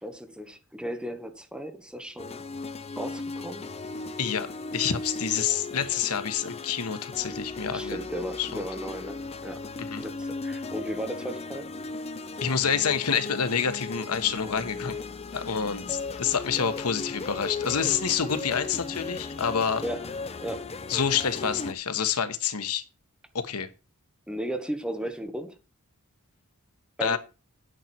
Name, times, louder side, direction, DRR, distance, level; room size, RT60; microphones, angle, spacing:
voice 1, 0.0-2.4 3.0-3.7 7.7-9.7 10.0-11.7 19.8-20.1 20.4-20.7 24.3-25.6 27.0-27.2, right 1 dB, 5° right, 1.4 m, -35 dB
sound 1, 2.2-21.7, left 3 dB, 30° left, 0.6 m, -36 dB
voice 2, 4.7-8.0 8.4-8.6 9.8-10.0 12.4-14.9 15.3-19.8 20.9-22.8 23.3-23.7 27.0-27.2, left 7 dB, 90° left, 1.2 m, -27 dB
9.1 x 9.0 x 4.3 m
head